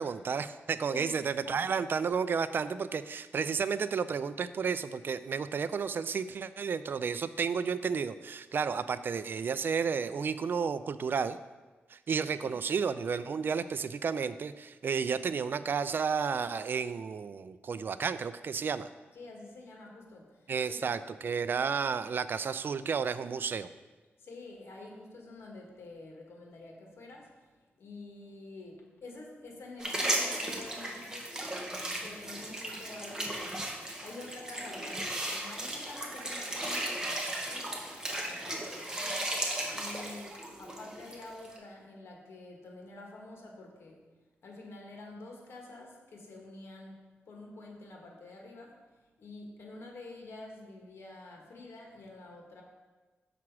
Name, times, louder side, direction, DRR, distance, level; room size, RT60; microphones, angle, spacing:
voice 1, 0.0-11.4 11.9-18.9 20.5-23.7, right 6 dB, 55° right, 13 dB, 0.3 m, -32 dB
voice 2, 19.1-20.9 24.2-44.0 44.4-48.8 49.2-52.6, left 2 dB, 75° left, 0 dB, 1.6 m, -48 dB
sound 1, 29.8-41.6, right 1 dB, 15° right, 1.2 m, -36 dB
7.3 x 5.9 x 4.7 m, 1.3 s
wide cardioid pair, 125°, 4 cm